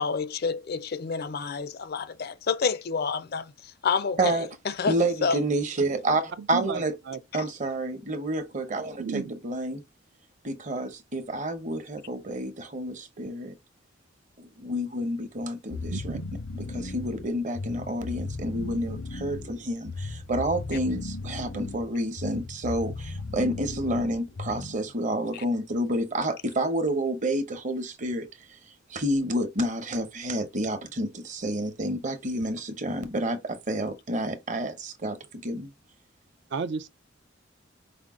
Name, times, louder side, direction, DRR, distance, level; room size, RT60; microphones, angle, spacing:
voice 1, 0.0-4.4 4.7-5.4 7.4-7.5 25.3-25.4, left 5 dB, 55° left, 0.5 m, -29 dB
voice 2, 4.9-6.9 7.3-9.8 10.4-13.5 14.4-16.2 16.5-28.3 28.9-35.7, right 1 dB, 40° right, 0.8 m, -29 dB
voice 3, 6.4-7.2 9.0-9.3 15.9-16.3 36.5-36.9, right 5 dB, 60° right, 0.4 m, -33 dB
sound 1, 15.7-24.9, left 3 dB, 80° left, 0.8 m, -37 dB
5.1 x 2.2 x 3.6 m
head